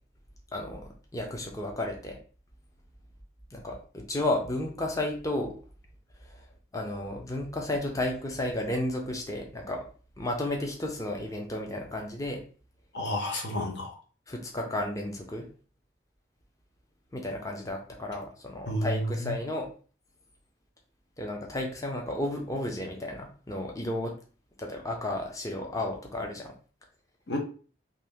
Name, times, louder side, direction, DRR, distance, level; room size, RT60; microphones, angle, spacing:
voice 1, 0.5-2.2 3.5-5.6 6.2-6.4 6.7-9.8 10.2-12.4 14.3-15.5 17.1-19.7 21.2-24.1 24.6-26.5, left 1 dB, 20° left, 1 dB, 0.6 m, -33 dB
voice 2, 12.9-14.0 18.7-19.3 27.3-27.4, left 1 dB, 65° left, 1 dB, 0.9 m, -31 dB
2.8 x 2.7 x 3.5 m, 0.39 s
head